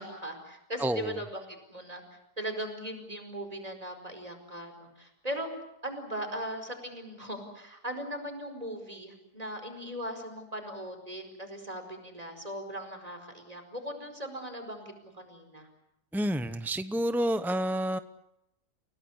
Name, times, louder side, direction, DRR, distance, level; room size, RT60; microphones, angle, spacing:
voice 1, 0.0-2.0 2.4-5.5 5.8-15.7, right 1 dB, 20° right, 5 dB, 4.9 m, -39 dB
voice 2, 0.8-1.1 16.1-18.0, right 1 dB, 5° right, 11 dB, 0.3 m, -29 dB
29.5 x 17.5 x 9.7 m, 0.86 s
omnidirectional pair, 1.7 m